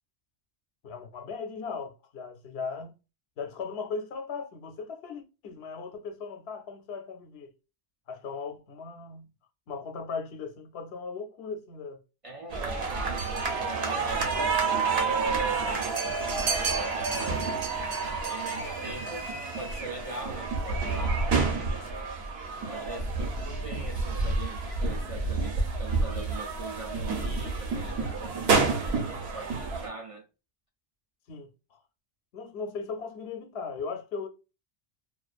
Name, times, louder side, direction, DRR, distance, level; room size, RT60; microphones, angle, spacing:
voice 1, 0.8-3.0 3.4-7.5 8.1-9.3 9.7-12.0 31.3-31.8 32.3-34.3, left 5 dB, 85° left, 0.8 m, -38 dB
voice 2, 12.2-14.3 15.0-17.0 18.0-21.5 22.7-30.3, right 2 dB, 50° right, 0.4 m, -42 dB
sound 1, 12.5-29.9, right 4 dB, 75° right, 1.0 m, -29 dB
2.4 x 2.4 x 2.3 m
omnidirectional pair, 1.1 m